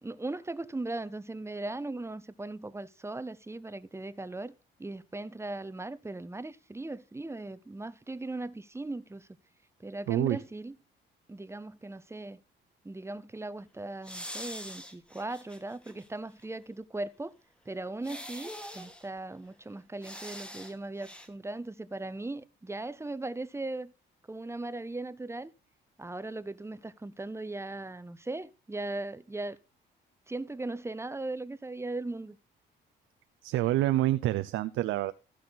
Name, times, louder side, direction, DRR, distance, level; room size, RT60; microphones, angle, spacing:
voice 1, 0.0-4.5 4.8-9.3 9.8-10.7 11.3-12.4 12.8-17.3 17.7-23.9 24.3-25.5 26.0-29.6 30.3-32.4, right 2 dB, 15° right, 0.8 m, -38 dB
voice 2, 10.1-10.4 33.4-35.1, right 15 dB, 90° right, 0.6 m, -27 dB
sound 1, 14.0-16.1 16.4-16.5 18.0-19.1 20.0-20.7 21.0-21.3, equal, 5° left, 2.1 m, -43 dB
15.5 x 6.5 x 4.1 m
cardioid pair, 90°, 20 cm